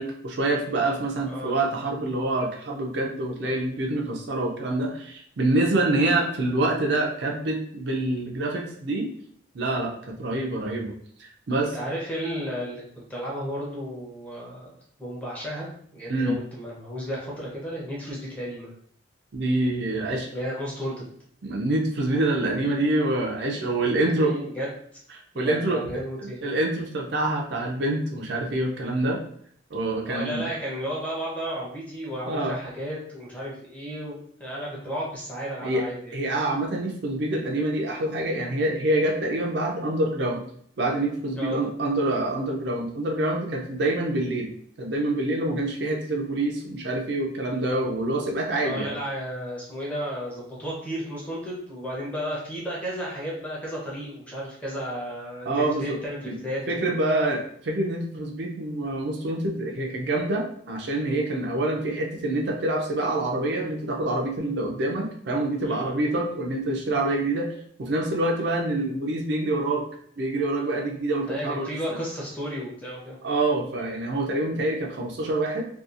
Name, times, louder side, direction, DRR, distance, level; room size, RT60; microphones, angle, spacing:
voice 1, 0.0-9.1 9.5-11.8 16.1-16.4 19.3-20.3 21.4-24.3 25.4-25.8 26.2-29.2 29.7-30.4 32.3-32.6 35.6-35.8 36.1-40.4 40.8-44.5 44.8-48.9 55.5-56.0 56.3-56.4 56.7-67.5 67.8-69.8 70.2-72.0 73.2-75.7, right 2 dB, 55° right, 0 dB, 0.4 m, -26 dB
voice 2, 1.2-1.6 11.6-14.7 15.0-18.7 20.3-21.0 22.5-22.8 23.4-25.0 25.3-26.4 30.1-36.2 41.4-41.6 48.5-56.9 57.1-57.3 65.6-65.9 71.3-73.2, equal, 5° left, -5 dB, 0.6 m, -33 dB
2.7 x 2.3 x 2.4 m, 0.64 s
head